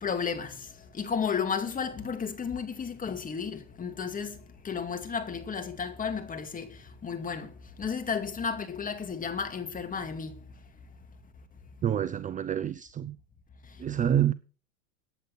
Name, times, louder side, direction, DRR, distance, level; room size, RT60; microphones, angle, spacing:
voice 1, 0.0-4.4 4.6-7.5 7.8-10.4, left 6 dB, 20° left, 2.3 m, -33 dB
voice 2, 11.8-13.2 13.8-14.3, right 10 dB, 20° right, 0.6 m, -27 dB
15.0 x 9.6 x 4.2 m
hypercardioid pair, 110°, 41 cm